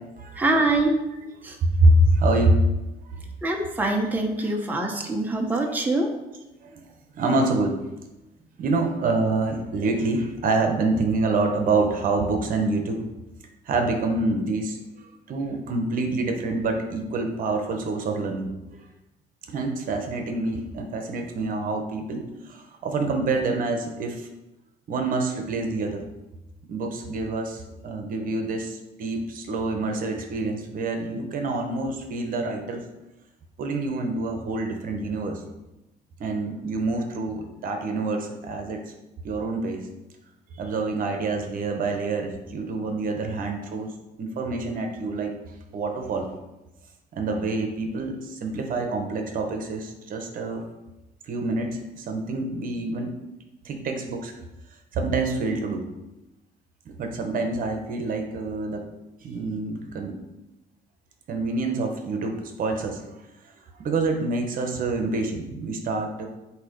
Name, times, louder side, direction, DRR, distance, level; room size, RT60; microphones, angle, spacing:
voice 1, 0.4-1.0 1.4-1.6 3.4-6.1, right 2 dB, 10° right, 1 dB, 0.9 m, -24 dB
voice 2, 1.6-2.6 3.1-3.2 4.4-4.5 6.6-6.8 7.1-7.8 8.6-13.0 13.6-14.8 15.3-18.5 19.5-24.3 24.9-26.0 26.7-32.8 33.6-35.4 36.2-38.8 39.2-39.9 40.5-45.4 45.7-46.3 47.1-50.6 51.3-53.1 53.6-54.3 54.9-55.8 57.0-58.9 59.2-60.2 61.3-63.1 63.8-66.3, right 2 dB, 55° right, 4 dB, 1.1 m, -26 dB
7.9 x 2.9 x 5.2 m, 0.99 s
cardioid pair, 110°, 17 cm